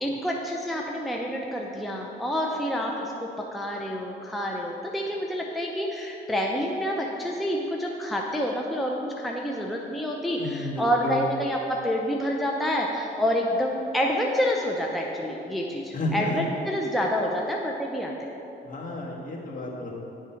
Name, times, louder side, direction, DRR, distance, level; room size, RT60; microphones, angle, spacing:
voice 1, 0.0-18.3, equal, ahead, -1 dB, 0.5 m, -28 dB
voice 2, 10.4-11.2 15.9-16.4 18.6-19.9, left 2 dB, 45° left, -3 dB, 1.4 m, -32 dB
9.7 x 3.6 x 4.4 m, 2.9 s
cardioid pair, 90°, 20 cm